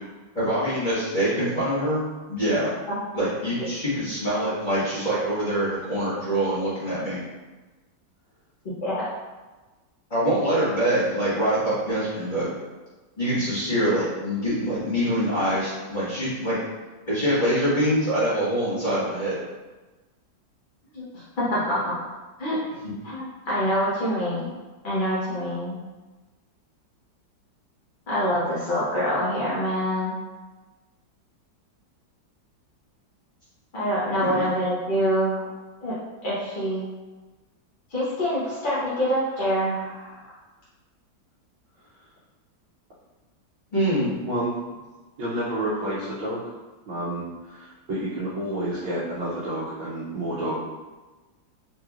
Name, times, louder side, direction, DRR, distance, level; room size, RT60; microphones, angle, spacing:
voice 1, 0.3-2.0 2.3-2.7 3.1-7.2 10.1-12.5 13.2-16.6 17.1-19.4 34.1-34.5 43.7-44.1, right 1 dB, 25° left, -11 dB, 1.3 m, -24 dB
voice 2, 20.9-22.0 22.4-22.6 23.0-24.5 24.8-25.8 28.1-30.2 33.7-35.4 35.8-35.9 36.2-36.8 37.9-40.2, equal, 45° left, -10 dB, 0.6 m, -26 dB
voice 3, 44.3-44.6 45.2-46.5 46.9-50.6, right 1 dB, 90° right, -10 dB, 1.6 m, -29 dB
4.1 x 3.1 x 2.4 m, 1.2 s
omnidirectional pair, 2.1 m